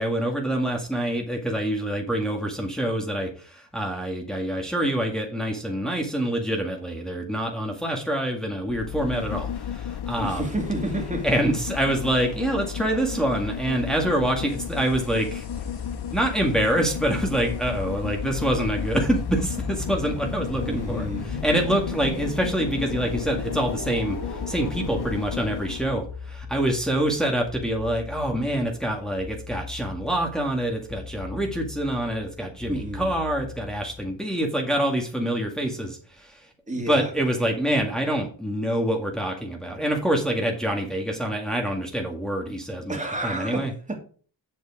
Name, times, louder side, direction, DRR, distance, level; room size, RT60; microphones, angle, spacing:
voice 1, 0.0-10.5 11.2-15.4 16.1-36.4 36.9-43.7, right 1 dB, ahead, 1.9 m, -26 dB
sound 1, 8.6-26.0 26.3-26.4, left 9 dB, 60° left, 0.7 m, -33 dB
voice 2, 10.2-11.6 20.6-21.3 32.7-33.1 36.7-37.1 42.9-44.0, right 2 dB, 15° right, 2.6 m, -30 dB
sound 2, 14.5-34.1, left 3 dB, 35° left, 4.7 m, -38 dB
7.4 x 6.6 x 4.8 m
wide cardioid pair, 110°, 46 cm